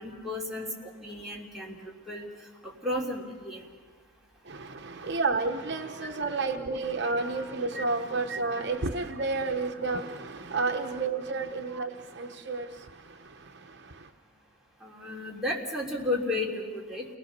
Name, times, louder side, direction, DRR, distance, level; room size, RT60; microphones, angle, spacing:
voice 1, 0.0-1.8 2.1-2.3 2.6-3.6 7.7-7.8 11.7-11.8 14.8-17.1, left 2 dB, ahead, -4 dB, 3.3 m, -33 dB
voice 2, 4.5-12.7, right 3 dB, 55° right, 5 dB, 1.0 m, -30 dB
29.5 x 20.0 x 6.7 m, 1.5 s
head